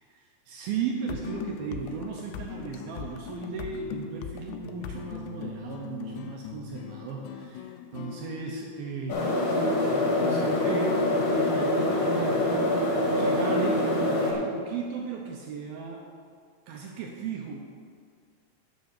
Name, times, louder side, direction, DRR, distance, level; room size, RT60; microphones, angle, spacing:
voice 1, 0.5-12.6 13.0-16.0 16.7-17.6, right 5 dB, 85° right, 0 dB, 2.1 m, -35 dB
sound 1, 1.0-10.4, left 7 dB, 80° left, 2.6 m, -41 dB
sound 2, 9.1-14.3, left 1 dB, 60° left, 1.7 m, -25 dB
8.3 x 6.9 x 6.5 m, 2.1 s
omnidirectional pair, 5.4 m